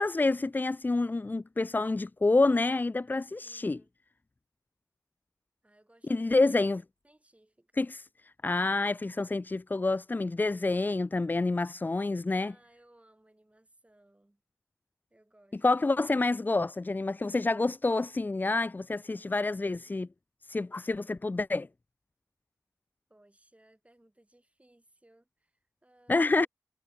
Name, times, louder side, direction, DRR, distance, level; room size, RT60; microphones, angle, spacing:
voice 1, 0.0-3.8 6.1-6.8 7.8-8.0 8.4-12.5 15.6-20.1 20.5-21.7 26.1-26.5, left 3 dB, 25° left, 0.4 m, -28 dB
voice 2, 3.4-3.9 5.6-6.6 7.0-7.8 12.0-14.4 15.1-15.8 23.1-26.5, right 1 dB, 20° right, 7.8 m, -63 dB
cardioid pair, 55°, 7 cm